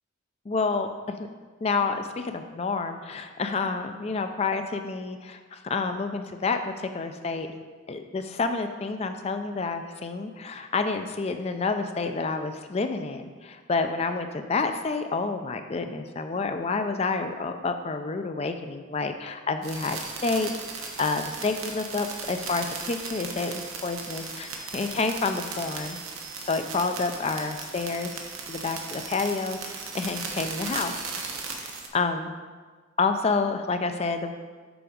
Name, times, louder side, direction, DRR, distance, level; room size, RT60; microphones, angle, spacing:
voice 1, 0.5-1.3 1.6-7.5 7.9-20.5 21.0-26.0 26.5-28.1 28.5-30.9 31.6-32.3 33.0-34.3, left 4 dB, 30° left, 7 dB, 0.4 m, -29 dB
sound 1, 19.6-31.9, right 4 dB, 85° right, 1.0 m, -37 dB
7.0 x 4.9 x 5.0 m, 1.4 s
head